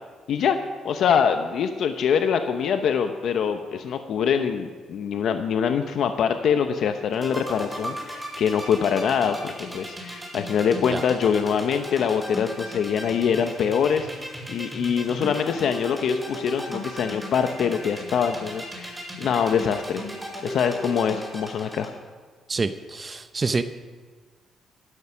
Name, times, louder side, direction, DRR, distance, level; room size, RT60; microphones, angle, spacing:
voice 1, 0.8-14.1 14.5-21.9, left 7 dB, 70° left, 7 dB, 0.8 m, -24 dB
sound 1, 7.1-21.9, equal, 5° right, 5.3 m, -35 dB
voice 2, 22.5-23.6, right 4 dB, 30° right, 10 dB, 0.7 m, -27 dB
13.5 x 11.0 x 5.9 m, 1.5 s
cardioid pair, 90°, 0 cm